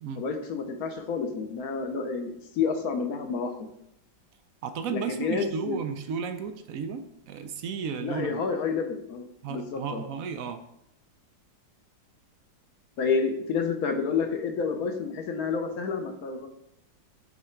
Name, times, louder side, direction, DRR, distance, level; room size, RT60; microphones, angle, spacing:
voice 1, 0.2-3.7 4.9-5.8 8.0-10.0 13.0-16.5, left 5 dB, 60° left, 6 dB, 1.2 m, -29 dB
voice 2, 4.6-8.4 9.4-10.6, right 6 dB, 75° right, 8 dB, 0.8 m, -34 dB
9.8 x 3.7 x 4.5 m, 0.80 s
omnidirectional pair, 2.0 m